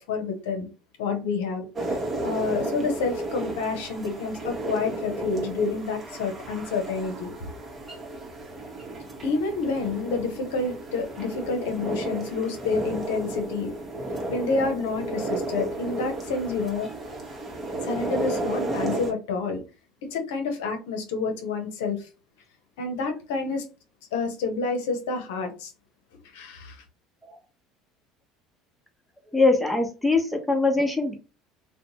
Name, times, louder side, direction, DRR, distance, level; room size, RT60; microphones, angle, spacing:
voice 1, 0.1-0.7 1.0-7.3 9.2-13.7 14.3-16.9 17.8-19.6 20.0-22.1 22.8-23.6 24.1-25.7 26.3-26.8, left 4 dB, 80° left, 0.6 m, -29 dB
sound 1, 1.8-19.1, right 2 dB, 30° right, 0.9 m, -33 dB
voice 2, 29.3-31.1, left 3 dB, 5° left, 0.8 m, -22 dB
2.5 x 2.1 x 2.9 m
hypercardioid pair, 75°, 0 cm